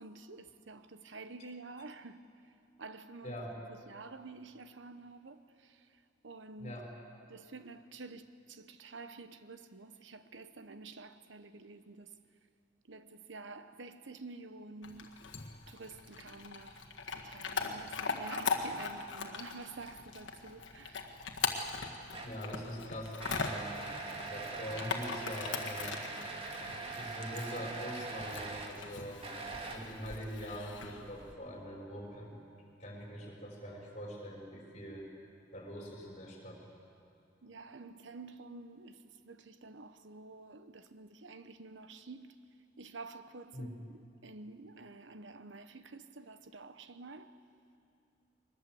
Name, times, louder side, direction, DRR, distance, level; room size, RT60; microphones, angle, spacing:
voice 1, 0.0-2.5 2.8-3.4 3.7-6.7 7.3-12.1 12.9-15.1 15.7-21.1 37.4-42.4 42.8-47.4, right 3 dB, 85° right, 1.1 m, -49 dB
voice 2, 3.2-3.6 6.6-6.9 22.2-26.0 26.9-29.3 29.7-32.4 32.8-35.1 35.5-36.7 43.5-43.7, equal, 35° left, 5.7 m, -43 dB
Chewing mastication / Dog, 14.8-31.3, left 5 dB, 90° left, 1.7 m, -40 dB
sound 1, 22.1-22.5 23.2-28.8 29.2-30.1, right 3 dB, 30° right, 2.0 m, -42 dB
22.5 x 20.0 x 7.9 m
head